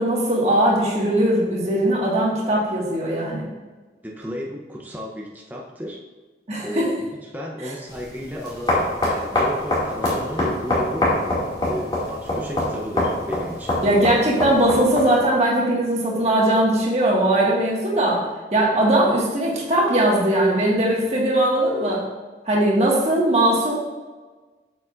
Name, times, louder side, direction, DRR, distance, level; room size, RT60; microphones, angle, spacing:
voice 1, 0.0-3.4 6.5-6.9 7.6-7.7 13.8-18.2 18.5-22.0 22.4-23.7, right 1 dB, 35° right, -4 dB, 1.7 m, -20 dB
voice 2, 4.0-6.0 6.6-6.9 7.2-11.1 11.6-13.8, equal, 10° right, -2 dB, 0.7 m, -33 dB
sound 1, 7.9-15.2, left 1 dB, 25° left, 2.2 m, -25 dB
8.3 x 6.8 x 2.5 m, 1.3 s
head